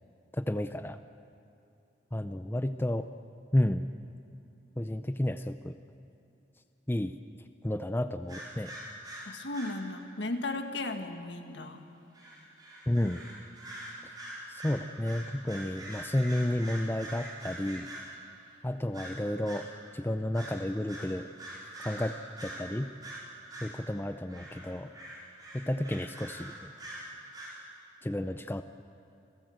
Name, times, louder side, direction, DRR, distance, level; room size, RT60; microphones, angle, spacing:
voice 1, 0.3-1.0 2.1-3.1 3.5-3.9 4.8-5.8 6.9-7.2 7.6-8.7 12.9-13.2 14.5-17.9 18.6-19.7 19.9-21.3 21.8-22.9 23.6-24.9 25.5-26.7 28.0-28.6, left 1 dB, 10° left, 10 dB, 0.4 m, -31 dB
sound 1, 8.3-9.8 12.1-18.2 18.9-19.7 20.3-20.6 20.9-22.7 23.0-23.8 24.3-27.6, right 1 dB, 20° right, 5.2 m, -44 dB
voice 2, 9.3-11.8, left 2 dB, 75° left, 5 dB, 1.8 m, -35 dB
27.5 x 16.5 x 7.8 m, 2.7 s
head